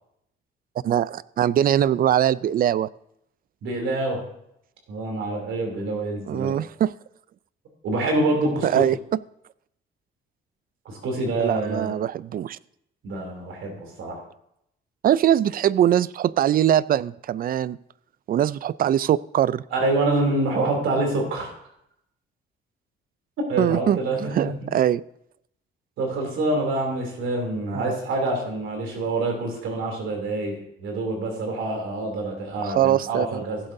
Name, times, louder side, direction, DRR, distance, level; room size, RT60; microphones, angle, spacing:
voice 1, 0.8-2.9 6.3-6.9 8.6-9.0 11.4-12.6 15.0-17.8 18.3-19.6 23.6-24.0 24.3-25.0 27.7-27.9 32.6-33.4, right 11 dB, 50° right, 20 dB, 0.4 m, -22 dB
voice 2, 3.6-4.2 4.9-6.5 7.8-8.8 10.8-11.9 13.0-14.2 19.7-21.5 23.5-24.7 26.0-33.6, right 2 dB, 80° right, 2 dB, 3.0 m, -26 dB
16.0 x 8.0 x 2.7 m, 0.75 s
cardioid pair, 90°, 20 cm